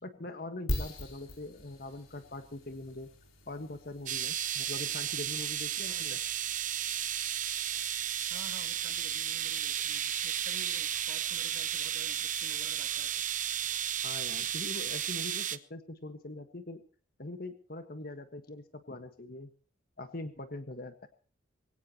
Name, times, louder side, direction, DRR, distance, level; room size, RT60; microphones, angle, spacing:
voice 1, 0.0-3.1 3.5-6.2 14.0-16.8 17.2-19.5 20.0-21.1, left 2 dB, 45° left, 8 dB, 1.5 m, -42 dB
sound 1, 0.7-15.4, left 1 dB, 90° left, 4.8 m, -46 dB
sound 2, 4.1-15.6, right 10 dB, 40° right, 0.9 m, -33 dB
voice 2, 5.9-6.2 8.3-13.1, right 2 dB, 75° right, 3 dB, 2.8 m, -51 dB
23.0 x 17.0 x 3.0 m, 0.41 s
head